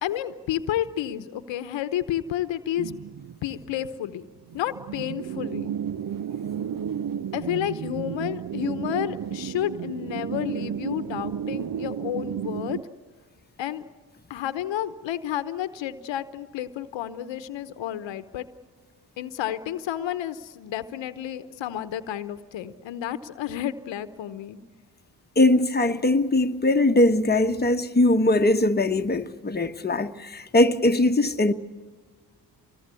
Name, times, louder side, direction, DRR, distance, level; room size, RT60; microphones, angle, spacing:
voice 1, 0.0-2.9 3.4-4.3 4.5-5.7 7.3-12.8 13.6-13.8 14.3-18.5 19.2-24.6, left 11 dB, 85° left, 1.0 m, -31 dB
sound 1, 2.8-3.9 4.2-4.3 4.5-12.8, right 9 dB, 50° right, 0.7 m, -32 dB
voice 2, 25.4-31.5, left 2 dB, 20° left, 1.2 m, -21 dB
25.0 x 20.5 x 8.3 m
supercardioid pair, 50°, 44 cm